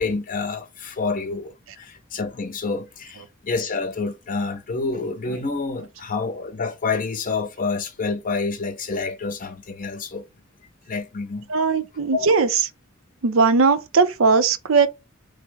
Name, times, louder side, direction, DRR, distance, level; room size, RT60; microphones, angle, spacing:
voice 1, 0.0-10.3 10.9-11.5 12.1-12.3, left 4 dB, 40° left, 0.7 m, -28 dB
voice 2, 11.5-12.7 13.2-14.9, right 4 dB, 75° right, 0.5 m, -19 dB
3.4 x 2.1 x 3.4 m
head